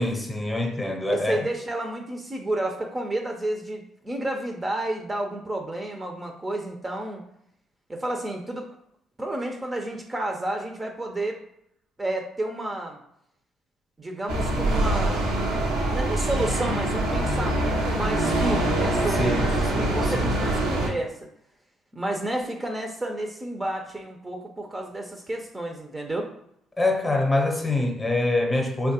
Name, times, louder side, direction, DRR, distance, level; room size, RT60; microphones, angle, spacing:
voice 1, 0.0-1.5 19.1-20.4 26.8-28.9, left 2 dB, 20° left, 2 dB, 0.7 m, -25 dB
voice 2, 1.1-7.2 7.9-8.7 9.2-11.4 12.0-13.0 14.0-15.2 15.8-21.3 21.9-26.3, right 1 dB, 25° right, 3 dB, 0.5 m, -31 dB
sound 1, 14.3-20.9, right 1 dB, 85° right, 0.6 m, -24 dB
3.1 x 2.2 x 2.8 m, 0.74 s
hypercardioid pair, 50°, 0 cm